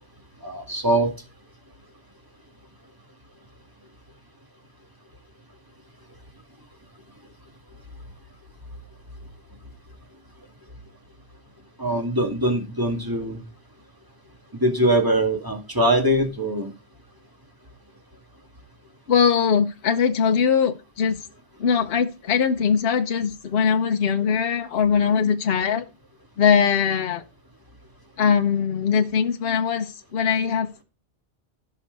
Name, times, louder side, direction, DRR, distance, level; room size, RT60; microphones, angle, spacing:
voice 1, 0.4-1.1 11.8-13.4 14.5-16.7, right 1 dB, 20° right, 2.2 m, -22 dB
voice 2, 19.1-21.2 21.6-25.8 26.4-27.2 28.2-30.8, left 6 dB, 65° left, 1.0 m, -21 dB
16.0 x 5.8 x 4.0 m
omnidirectional pair, 1.1 m